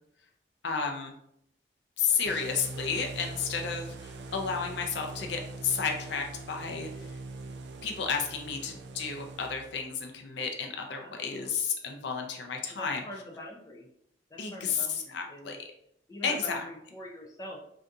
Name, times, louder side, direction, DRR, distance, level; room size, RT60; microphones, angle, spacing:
voice 1, 0.6-1.1 2.0-6.9 7.8-13.0 14.4-15.6 16.2-16.6, left 6 dB, 75° left, 3 dB, 0.5 m, -32 dB
voice 2, 2.1-2.7 10.8-11.5 12.7-13.9 14.3-15.6 16.1-17.6, left 1 dB, 20° left, -3 dB, 0.5 m, -45 dB
sound 1, 2.3-9.9, right 2 dB, 70° right, 0.3 m, -42 dB
2.7 x 2.5 x 3.4 m, 0.73 s
head